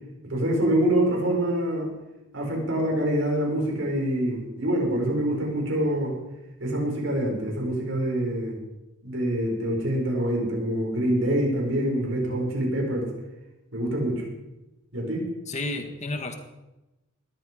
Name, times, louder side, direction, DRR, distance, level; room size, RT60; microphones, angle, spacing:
voice 1, 0.2-1.9 2.3-6.1 6.6-8.6 9.0-13.1 13.7-14.2 14.9-15.2, right 1 dB, 70° right, 0 dB, 6.4 m, -25 dB
voice 2, 15.5-16.4, left 2 dB, 35° left, 6 dB, 1.8 m, -31 dB
20.0 x 14.0 x 5.2 m, 1.0 s
head